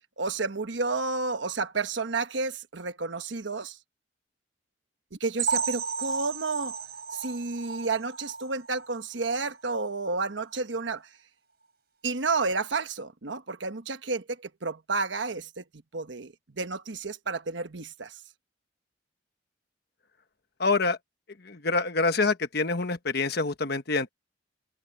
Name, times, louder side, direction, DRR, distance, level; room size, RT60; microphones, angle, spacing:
voice 1, 0.2-3.8 5.1-6.7 7.1-11.0 12.0-15.6 15.9-18.2, right 3 dB, 75° right, 1.2 m, -31 dB
sound 1, 5.4-9.0 9.4-9.6 9.9-10.0 10.5-10.6, right 5 dB, 55° right, 7.2 m, -33 dB
voice 2, 20.6-21.0 21.4-24.1, left 3 dB, 55° left, 1.3 m, -26 dB
head